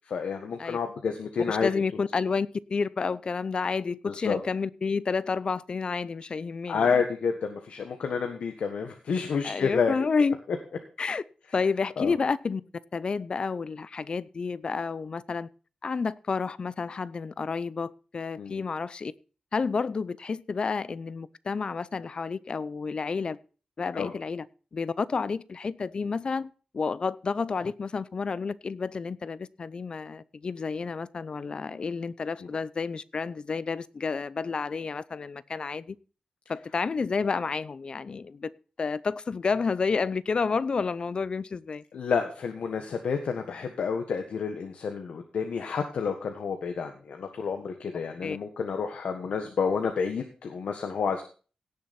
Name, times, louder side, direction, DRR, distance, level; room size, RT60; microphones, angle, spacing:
voice 1, 0.0-1.7 4.0-4.4 6.7-10.0 12.0-12.1 18.4-18.6 23.9-24.1 32.4-32.5 41.9-51.2, left 6 dB, 90° left, 1.5 m, -29 dB
voice 2, 1.5-7.0 9.4-10.3 11.0-11.2 11.5-12.6 12.9-15.5 15.8-19.1 19.5-23.4 23.8-24.5 24.7-36.0 36.5-38.5 38.8-41.8 48.2-48.4, left 5 dB, 45° left, 0.6 m, -30 dB
17.5 x 7.0 x 4.3 m
wide cardioid pair, 130°, 2 cm